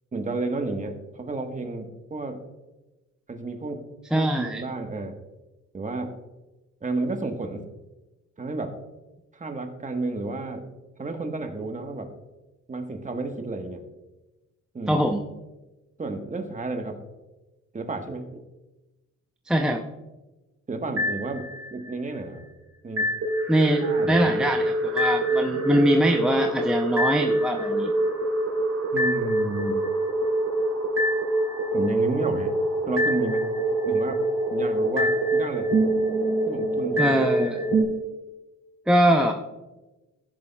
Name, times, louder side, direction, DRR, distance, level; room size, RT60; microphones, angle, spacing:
voice 1, 0.1-2.4 3.3-3.8 4.1-5.2 5.7-6.1 6.8-7.6 8.4-8.7 9.3-10.6 11.0-12.1 12.7-13.8 14.7-15.0 16.0-17.0 17.7-18.4 20.7-22.4 22.8-23.1 23.8-24.4 26.4-26.5 28.9-29.9 31.7-32.5 32.9-33.5 33.8-34.2 34.5-35.7 36.5-37.2, right 2 dB, 25° right, 5 dB, 1.2 m, -31 dB
voice 2, 4.1-4.6 14.9-15.2 19.5-19.8 23.5-27.9 37.0-37.6 38.9-39.3, equal, 5° right, 3 dB, 0.6 m, -22 dB
sound 1, 21.0-21.9 23.0-37.8, right 1 dB, 60° right, 3.2 m, -25 dB
15.0 x 7.0 x 2.3 m, 1.1 s
cardioid pair, 90°, 30 cm